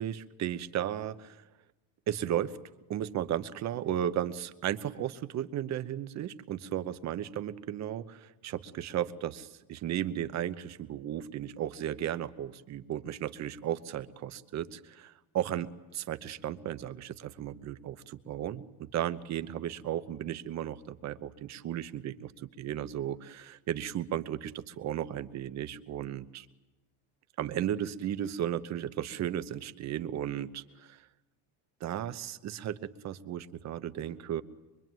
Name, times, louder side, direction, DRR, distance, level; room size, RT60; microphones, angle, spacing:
voice 1, 0.0-1.4 2.1-2.6 2.9-26.5 27.4-31.0 31.8-34.4, right 11 dB, 35° right, 12 dB, 1.0 m, -35 dB
24.0 x 24.0 x 9.2 m, 1.1 s
cardioid pair, 165°, 48 cm